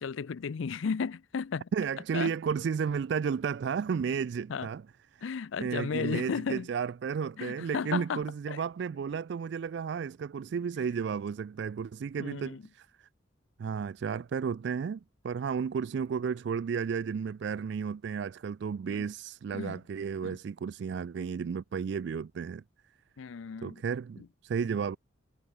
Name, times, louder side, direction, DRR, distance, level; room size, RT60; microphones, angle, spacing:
voice 1, 0.0-1.7 2.1-2.3 4.5-4.7 5.2-6.7 7.4-8.6 12.2-12.6 18.9-19.1 19.5-19.8 20.2-20.4 23.2-23.8 24.2-24.3, left 5 dB, 70° left, 0.4 m, -34 dB
voice 2, 1.7-4.8 5.1-5.2 5.6-13.1 13.6-22.6 23.6-25.0, right 6 dB, 55° right, 0.3 m, -33 dB
head